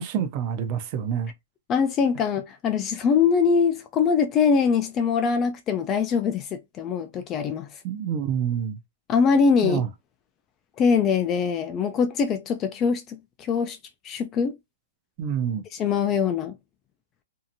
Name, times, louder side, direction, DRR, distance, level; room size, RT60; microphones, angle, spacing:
voice 1, 0.0-1.3 7.8-8.8 9.6-9.9 15.2-15.6, right 8 dB, 35° right, 0.5 m, -27 dB
voice 2, 1.7-7.7 9.1-9.8 10.8-13.8 14.0-14.6 15.7-16.5, left 6 dB, 20° left, 0.3 m, -23 dB
2.7 x 2.4 x 2.6 m
hypercardioid pair, 150°, 0 cm